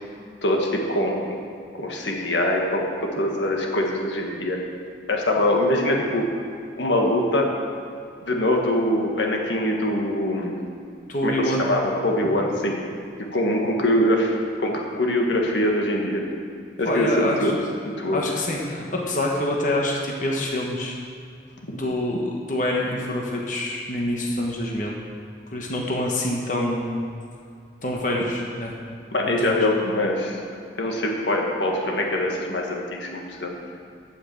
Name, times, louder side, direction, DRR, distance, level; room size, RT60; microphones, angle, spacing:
voice 1, 0.4-1.4 1.7-4.6 5.1-6.3 6.8-7.5 8.2-10.6 11.2-12.8 13.3-14.3 14.6-16.2 16.8-17.6 17.8-18.2 28.1-28.2 29.1-30.4 30.8-33.5, left 1 dB, 85° left, 0 dB, 1.6 m, -23 dB
voice 2, 11.1-11.7 16.9-17.5 18.1-21.0 21.7-24.9 25.5-27.0 27.8-28.7 29.4-29.6, left 1 dB, 45° left, -1 dB, 1.2 m, -26 dB
8.6 x 8.4 x 7.1 m, 2.3 s
head